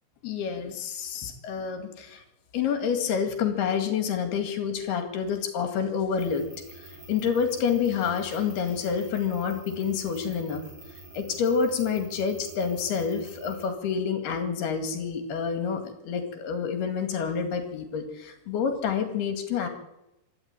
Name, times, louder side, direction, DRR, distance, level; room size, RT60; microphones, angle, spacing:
voice 1, 0.2-2.2 2.5-6.5 6.8-10.6 11.1-19.7, left 6 dB, 70° left, 7 dB, 4.1 m, -28 dB
sound 1, 6.2-13.7, right 2 dB, 35° right, 7.0 m, -47 dB
25.0 x 13.0 x 9.0 m, 0.90 s
omnidirectional pair, 4.8 m